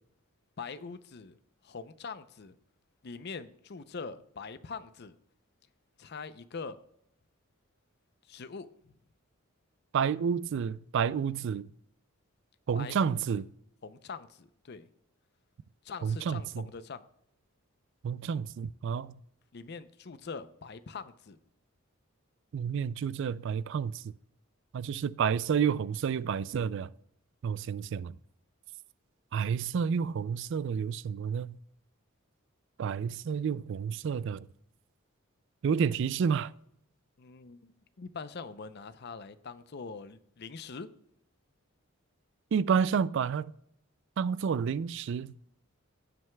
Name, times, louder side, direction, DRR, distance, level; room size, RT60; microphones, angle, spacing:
voice 1, 0.6-1.4 1.6-2.6 3.0-5.2 6.0-6.8 8.3-8.9 12.7-13.4 13.8-14.9 15.8-17.0 19.5-21.4 37.2-37.6 38.0-40.9, left 5 dB, 50° left, 0.5 m, -43 dB
voice 2, 9.9-11.7 12.7-13.5 16.0-16.6 18.0-19.1 22.5-24.0 24.7-26.9 27.4-28.1 29.3-31.6 32.8-34.5 35.6-36.5 42.5-43.5 44.2-45.3, right 7 dB, 60° right, 0.3 m, -30 dB
16.5 x 7.7 x 2.2 m
head